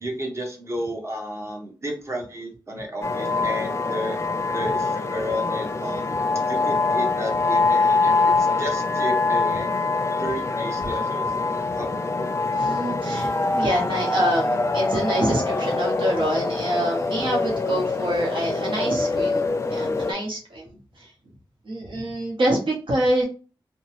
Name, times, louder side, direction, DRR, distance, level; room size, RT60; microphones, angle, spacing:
voice 1, 0.0-4.2 4.5-6.2 6.5-9.7 10.2-11.4 11.8-12.3, equal, 35° right, 1 dB, 1.0 m, -32 dB
sound 1, 3.0-20.1, left 3 dB, 35° left, 0.4 m, -24 dB
voice 2, 12.5-20.7 21.7-23.2, right 1 dB, 85° right, -2 dB, 0.9 m, -26 dB
2.9 x 2.2 x 2.9 m, 0.37 s
wide cardioid pair, 75°, 8 cm